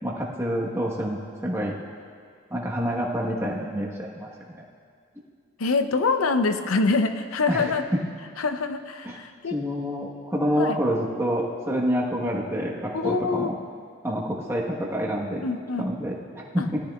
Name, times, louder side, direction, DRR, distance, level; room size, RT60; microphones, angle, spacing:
voice 1, 0.0-1.7 2.5-4.3 7.5-7.7 9.0-9.2 9.5-13.5 14.0-15.4 15.8-16.8, equal, 15° right, -3 dB, 1.2 m, -27 dB
voice 2, 5.6-7.8 8.4-9.6 10.6-10.8 12.9-13.5 15.4-15.9 16.6-16.7, left 4 dB, 85° left, 9 dB, 0.6 m, -25 dB
17.5 x 13.0 x 2.3 m, 2.1 s
head